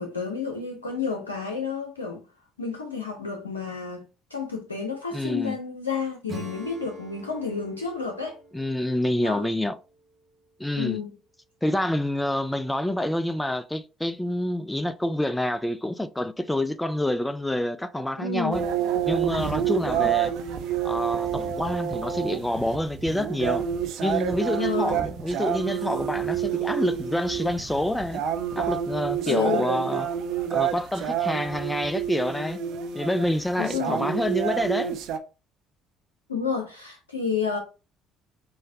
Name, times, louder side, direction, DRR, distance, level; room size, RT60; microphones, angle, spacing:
voice 1, 0.0-2.3 2.6-8.4 9.2-9.5 10.7-11.1 18.2-18.6 19.8-20.2 24.6-25.0 29.2-29.7 33.6-34.1 36.3-37.6, left 5 dB, 90° left, 0.6 m, -30 dB
voice 2, 5.1-5.6 8.5-9.8 10.6-11.0 11.6-18.6 19.0-20.3 20.8-23.6 24.0-28.2 28.6-30.1 30.5-32.6 33.0-35.0, left 1 dB, 10° left, 0.4 m, -27 dB
Acoustic guitar / Strum, 6.3-10.6, right 2 dB, 45° right, 1.7 m, -45 dB
sound 1, 18.5-35.2, right 9 dB, 60° right, 0.6 m, -28 dB
5.0 x 3.8 x 2.6 m
figure-of-eight pair, 55°, 0 cm